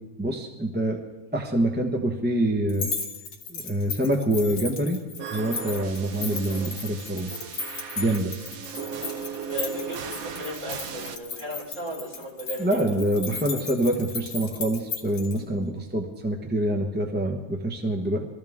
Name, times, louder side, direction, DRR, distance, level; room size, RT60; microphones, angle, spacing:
voice 1, 0.2-1.0 1.3-2.9 3.5-5.0 5.3-7.3 8.0-8.3 12.6-18.3, right 1 dB, 10° right, 2 dB, 0.7 m, -26 dB
sound 1, 2.7-15.4, left 4 dB, 80° left, 2.6 m, -36 dB
sound 2, 5.2-11.2, right 7 dB, 60° right, 1.0 m, -37 dB
voice 2, 9.5-13.0, right 1 dB, 40° right, -6 dB, 5.7 m, -35 dB
23.5 x 14.0 x 3.6 m, 1.2 s
omnidirectional pair, 2.1 m